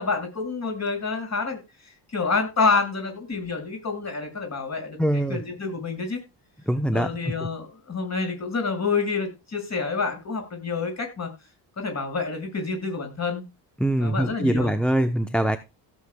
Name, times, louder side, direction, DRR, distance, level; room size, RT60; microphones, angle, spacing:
voice 1, 0.0-1.6 2.1-6.2 6.9-11.3 11.8-13.4 14.0-14.7, left 4 dB, 35° left, 6.8 m, -28 dB
voice 2, 5.0-5.4 6.7-7.3 13.8-15.6, right 1 dB, ahead, 0.8 m, -23 dB
17.0 x 7.7 x 2.3 m
cardioid pair, 110°, 46 cm